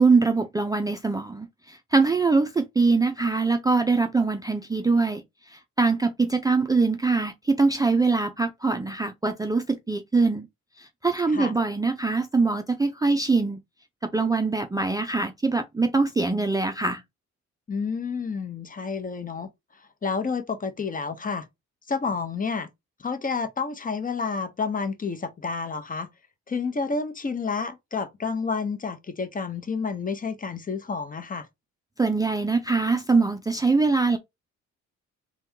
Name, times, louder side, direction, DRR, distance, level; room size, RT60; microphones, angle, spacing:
voice 1, 0.0-10.5 10.8-13.6 14.0-17.0 32.0-34.2, right 3 dB, 10° right, 0.4 m, -23 dB
voice 2, 17.7-19.5 19.7-21.5 21.9-22.7 23.0-26.1 26.5-31.5, left 5 dB, 25° left, 0.8 m, -30 dB
3.5 x 2.3 x 4.4 m
cardioid pair, 90°, 30 cm